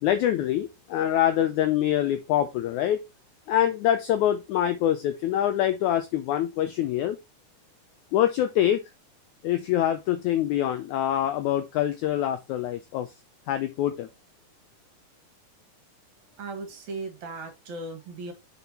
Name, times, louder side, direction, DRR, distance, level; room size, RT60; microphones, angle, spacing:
voice 1, 0.0-3.0 3.5-7.2 8.1-8.8 9.4-13.1 13.5-14.1, left 11 dB, 80° left, 1.7 m, -25 dB
voice 2, 16.2-18.3, right 3 dB, 60° right, 2.7 m, -37 dB
6.7 x 6.3 x 2.8 m
omnidirectional pair, 4.0 m